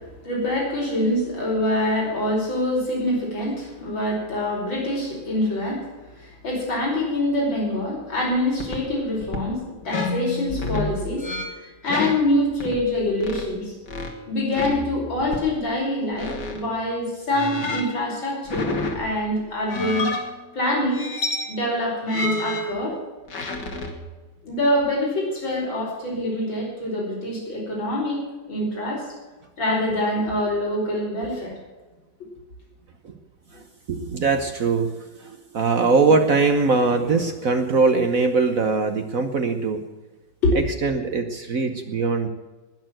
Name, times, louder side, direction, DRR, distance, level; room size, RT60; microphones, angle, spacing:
voice 1, 0.2-5.8 6.1-11.3 11.6-13.7 14.3-20.1 20.5-21.0 21.5-23.0 24.4-28.2 28.5-29.1 29.6-31.5 40.4-40.6, left 1 dB, 85° left, -3 dB, 5.9 m, -25 dB
sound 1, 8.6-8.9 9.2-9.5 9.8-13.5 13.9-14.2 14.5-15.5 16.1-16.7 17.3-19.2 19.7-20.4 20.9-21.6 22.1-24.1, left 2 dB, 65° left, 2.6 m, -30 dB
voice 2, 33.9-39.8 40.5-42.3, right 4 dB, 50° right, 7 dB, 1.3 m, -21 dB
20.0 x 6.8 x 7.6 m, 1.2 s
omnidirectional pair, 2.1 m